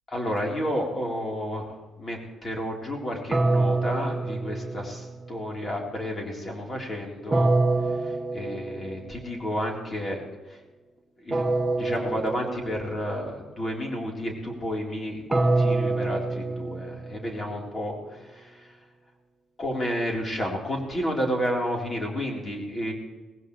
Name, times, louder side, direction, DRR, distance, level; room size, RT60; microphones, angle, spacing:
voice 1, 0.1-7.6 8.0-10.2 10.5-10.6 11.2-11.4 11.8-18.7 19.6-22.9, equal, 30° left, -1 dB, 4.1 m, -31 dB
sound 1, 3.3-5.4 7.3-9.1 11.3-13.1 15.3-17.5, right 2 dB, 20° right, 1.0 m, -26 dB
18.5 x 16.5 x 3.3 m, 1.3 s
cardioid pair, 90°, 0 cm